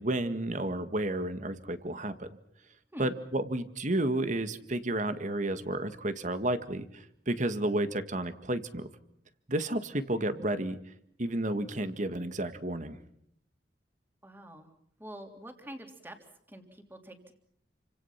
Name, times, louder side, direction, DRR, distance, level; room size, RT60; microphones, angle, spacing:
voice 1, 0.0-2.3 3.0-6.9 7.3-8.9 9.5-10.8 11.2-13.0, right 1 dB, 45° right, 10 dB, 1.9 m, -31 dB
voice 2, 14.2-14.7 15.0-16.2 16.5-17.3, right 1 dB, 10° right, 5 dB, 3.4 m, -46 dB
29.0 x 26.0 x 5.9 m, 0.69 s
head